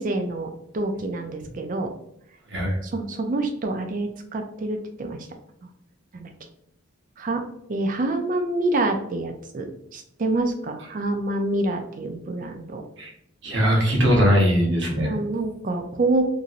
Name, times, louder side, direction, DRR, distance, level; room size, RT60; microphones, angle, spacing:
voice 1, 0.0-1.9 2.8-5.2 6.1-6.3 7.2-7.4 7.7-9.7 9.9-12.8 15.0-16.2, right 2 dB, 40° right, 5 dB, 0.4 m, -27 dB
voice 2, 13.4-15.1, equal, 60° right, -1 dB, 0.9 m, -20 dB
2.9 x 2.6 x 2.5 m, 0.75 s
head